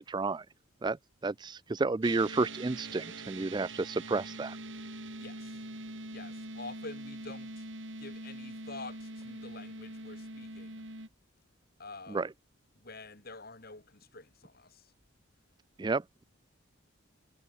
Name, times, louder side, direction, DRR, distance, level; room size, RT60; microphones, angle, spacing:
voice 1, 0.1-0.4 0.8-1.0 1.2-4.6 12.1-12.3 15.8-16.2, right 3 dB, 20° right, 0.3 m, -31 dB
sound 1, 2.0-11.1, right 2 dB, 60° right, 5.4 m, -43 dB
voice 2, 5.2-5.7 6.1-7.6 8.0-10.8 11.8-12.3 12.7-14.9, left 3 dB, 45° left, 3.0 m, -48 dB
head